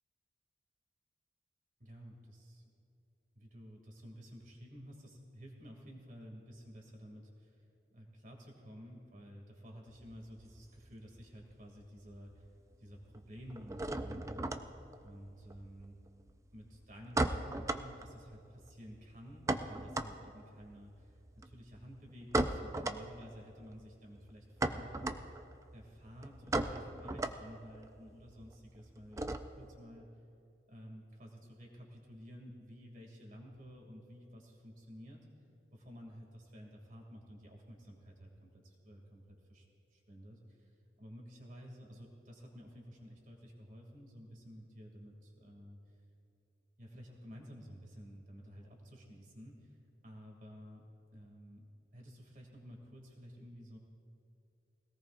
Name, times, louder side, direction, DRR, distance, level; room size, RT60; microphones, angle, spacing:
voice 1, 1.8-2.7 3.3-7.6 7.9-12.4 12.8-14.7 15.0-15.9 16.5-21.2 21.4-25.2 25.7-29.2 29.5-30.1 30.7-35.3 35.7-40.7 41.0-46.0 46.8-49.8 50.0-50.8 51.1-51.7 51.9-53.8, equal, 50° right, 0 dB, 2.6 m, -52 dB
sound 1, 9.9-11.5 11.8-12.5 12.7-29.8, right 2 dB, 15° right, 0.4 m, -38 dB
20.5 x 17.5 x 2.6 m, 2.6 s
head